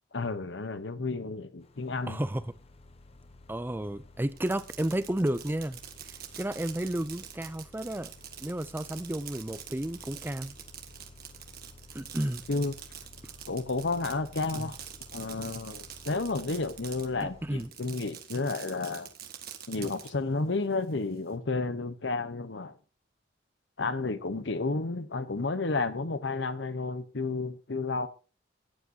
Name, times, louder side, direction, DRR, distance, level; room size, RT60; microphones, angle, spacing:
voice 1, 0.1-2.2 12.5-12.7 13.5-14.8 15.1-19.1 19.7-22.8 23.8-28.1, left 3 dB, 75° left, 1.0 m, -31 dB
sound 1, 1.6-17.7, left 2 dB, 35° left, 0.8 m, -54 dB
voice 2, 2.1-2.4 3.5-5.8 6.4-8.1 8.4-10.5 11.9-12.4 14.5-14.7 17.2-17.7 19.8-19.9, right 1 dB, 10° right, 0.5 m, -32 dB
Fireworks, 4.3-17.2 17.6-20.1, right 9 dB, 55° right, 1.5 m, -45 dB
14.5 x 9.7 x 2.8 m
head